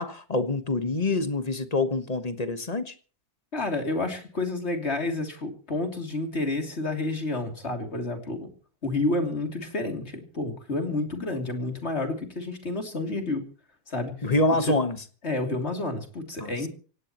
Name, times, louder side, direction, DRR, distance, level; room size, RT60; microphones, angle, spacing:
voice 1, 0.0-2.9 14.2-15.0 16.4-16.7, left 2 dB, 25° left, 1.4 m, -26 dB
voice 2, 3.5-8.5 8.8-13.4 13.9-14.1 14.6-14.7 15.2-16.7, left 2 dB, 45° left, 3.4 m, -30 dB
24.5 x 18.0 x 3.1 m
omnidirectional pair, 1.6 m